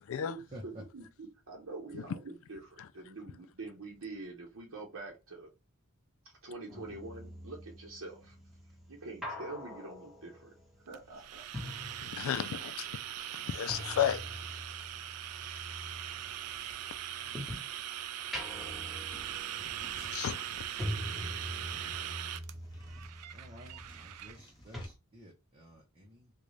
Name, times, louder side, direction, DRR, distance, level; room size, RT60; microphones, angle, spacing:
voice 1, 0.2-5.5 6.2-8.4 8.9-10.5 10.8-11.5, right 3 dB, 65° right, 0.8 m, -45 dB
sound 1, 6.7-12.7 12.9-17.8 18.2-24.5 24.7-24.9, equal, ahead, 1.1 m, -44 dB
sound 2, 10.9-24.4, right 11 dB, 90° right, 0.4 m, -41 dB
voice 2, 12.0-12.9 13.4-14.2 20.0-20.4, left 9 dB, 60° left, 0.3 m, -32 dB
sound 3, 18.6-18.7 19.1-21.0 21.5-22.1 22.5-23.1 23.6-24.9, equal, 20° left, 0.8 m, -56 dB
voice 3, 21.3-21.8 23.3-26.3, equal, 25° right, 0.7 m, -53 dB
3.9 x 2.2 x 3.2 m
head